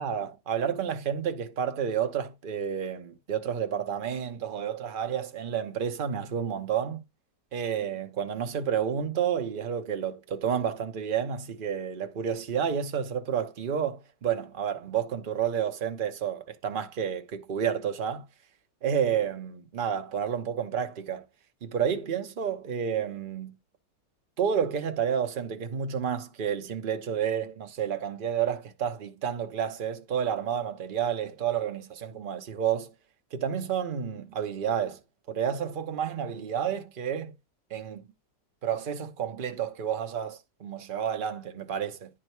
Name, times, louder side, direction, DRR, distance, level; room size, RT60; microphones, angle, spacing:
voice 1, 0.0-7.0 7.5-18.3 18.8-21.2 21.6-23.5 24.4-32.9 33.3-35.0 35.3-37.3 37.7-38.1 38.6-42.1, right 8 dB, 50° right, 0.6 m, -30 dB
10.0 x 3.7 x 4.5 m
omnidirectional pair, 2.0 m